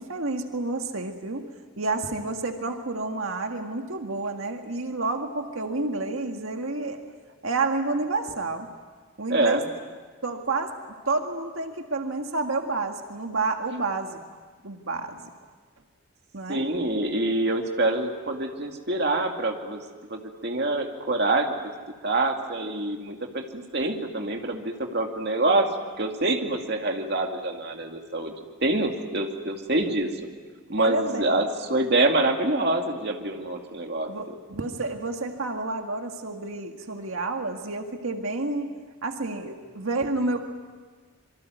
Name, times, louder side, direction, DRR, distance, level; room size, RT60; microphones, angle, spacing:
voice 1, 0.0-1.5 1.8-7.0 7.4-8.7 9.2-9.6 10.2-14.2 14.6-15.3 16.3-16.7 30.8-31.4 34.1-40.4, right 3 dB, 85° right, 4 dB, 1.9 m, -29 dB
voice 2, 9.3-9.6 16.5-19.8 20.1-21.5 22.0-25.7 26.0-28.3 28.6-30.1 30.7-34.1, right 2 dB, 55° right, 3 dB, 2.4 m, -26 dB
26.5 x 24.0 x 9.3 m, 1.5 s
head